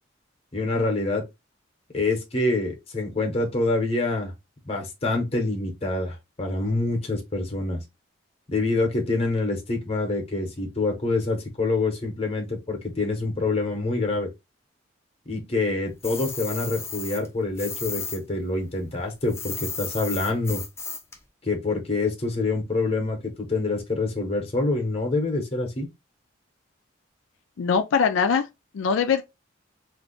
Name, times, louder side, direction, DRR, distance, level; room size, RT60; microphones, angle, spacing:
voice 1, 0.5-1.2 1.9-4.3 4.6-7.8 8.5-14.3 15.3-20.6 21.4-25.9, left 2 dB, 30° left, 0.9 m, -26 dB
sound 1, 16.0-18.2 18.5-21.2, left 5 dB, 15° left, 0.4 m, -34 dB
voice 2, 27.6-28.5 28.7-29.2, left 6 dB, 90° left, 0.4 m, -22 dB
2.5 x 2.3 x 3.8 m
head